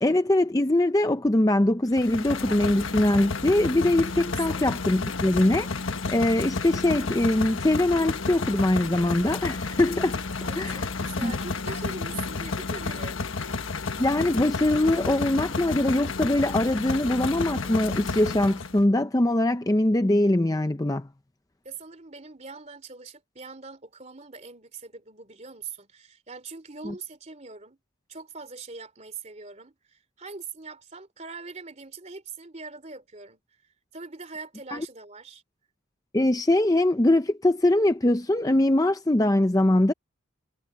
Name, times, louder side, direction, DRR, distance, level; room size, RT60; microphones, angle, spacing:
voice 1, 0.0-10.2 10.5-10.9 11.2-11.3 14.0-21.1 26.9-27.0 34.7-34.9 36.1-39.9, left 1 dB, 15° left, 0.5 m, -22 dB
sound 1, 1.9-18.8, left 4 dB, 70° left, 1.3 m, -31 dB
voice 2, 4.5-4.8 10.4-13.5 21.6-27.8 28.1-33.4 33.9-35.4, right 4 dB, 30° right, 3.1 m, -42 dB
head